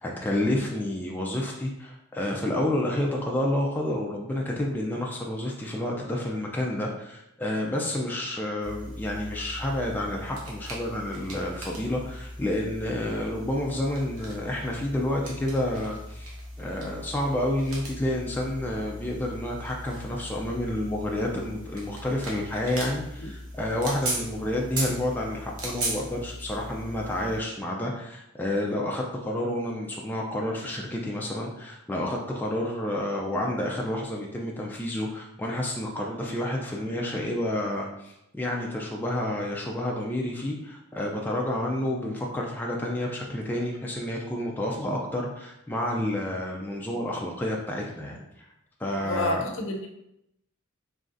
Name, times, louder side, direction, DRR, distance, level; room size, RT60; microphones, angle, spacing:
voice 1, 0.0-48.2 48.8-49.5, left 1 dB, 10° left, -2 dB, 0.3 m, -29 dB
sound 1, 8.6-27.4, right 1 dB, 75° right, 0.9 m, -38 dB
voice 2, 49.0-49.9, left 2 dB, 65° left, 2 dB, 0.6 m, -29 dB
3.8 x 3.1 x 2.5 m, 0.83 s
head